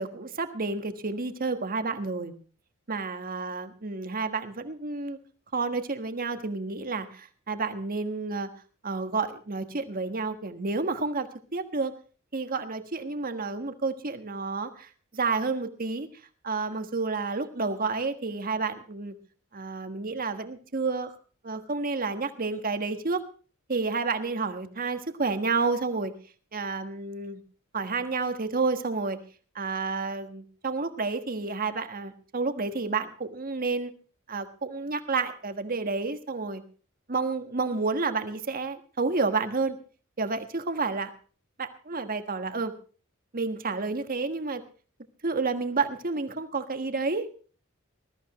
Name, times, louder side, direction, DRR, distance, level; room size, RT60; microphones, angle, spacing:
voice 1, 0.0-2.3 2.9-5.2 5.5-8.5 8.8-11.9 12.3-16.1 16.4-19.1 19.5-21.1 21.4-23.2 23.7-26.1 26.5-27.4 27.7-29.2 29.5-33.9 34.3-36.6 37.1-39.8 40.2-41.1 41.6-42.7 43.3-44.6 45.2-47.3, right 4 dB, 40° right, 9 dB, 1.5 m, -30 dB
20.5 x 14.0 x 3.1 m, 0.38 s
head